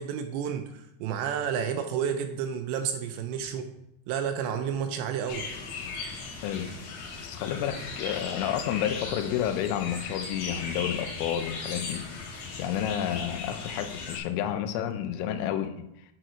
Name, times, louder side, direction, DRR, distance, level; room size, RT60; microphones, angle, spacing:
voice 1, 0.0-3.7 4.1-5.5, right 8 dB, 80° right, 2.7 m, -31 dB
sound 1, 5.3-14.2, left 4 dB, 70° left, 2.5 m, -37 dB
voice 2, 6.4-6.8 7.2-15.9, left 10 dB, 85° left, 3.1 m, -31 dB
9.0 x 4.7 x 4.3 m
omnidirectional pair, 5.4 m